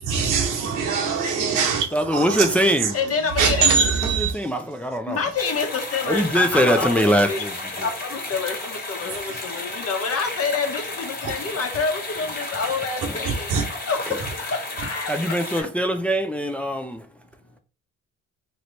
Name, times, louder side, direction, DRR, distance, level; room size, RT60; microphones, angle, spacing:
voice 1, 0.0-2.4 3.4-4.3 13.5-13.6, right 5 dB, 85° right, 1.2 m, -22 dB
voice 2, 1.9-3.0 4.0-5.2 6.0-7.9 13.1-13.2 14.1-14.2 15.1-17.1, equal, 5° left, 0.5 m, -22 dB
voice 3, 2.9-3.8 5.1-7.4 7.8-15.7, left 4 dB, 50° left, 1.1 m, -28 dB
sound 1, 5.4-15.6, left 2 dB, 30° left, 1.5 m, -33 dB
3.1 x 3.1 x 3.9 m
cardioid pair, 90°, 30 cm